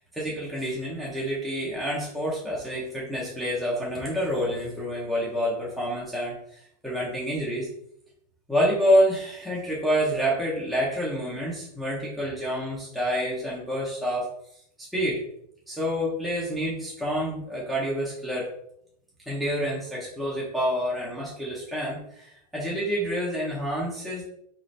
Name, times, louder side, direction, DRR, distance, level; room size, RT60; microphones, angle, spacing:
voice 1, 0.1-7.7 8.5-14.3 14.8-15.2 15.7-18.5 19.3-24.2, equal, ahead, -6 dB, 0.6 m, -28 dB
3.8 x 3.3 x 3.9 m, 0.73 s
supercardioid pair, 170°, 21 cm